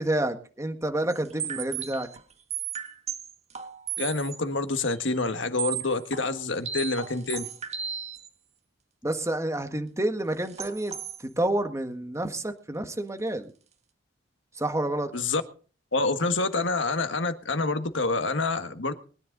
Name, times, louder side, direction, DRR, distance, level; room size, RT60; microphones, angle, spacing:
voice 1, 0.0-2.1 9.0-13.5 14.5-15.1, right 1 dB, 15° right, 6 dB, 1.6 m, -29 dB
sound 1, 1.1-4.4 4.7-4.8 5.3-5.4 5.6-8.3 10.4-11.2, right 8 dB, 35° right, 1.7 m, -35 dB
voice 2, 4.0-7.5 15.1-15.4 15.9-18.9, left 3 dB, 75° left, 8 dB, 1.6 m, -27 dB
22.5 x 10.5 x 4.0 m, 0.39 s
head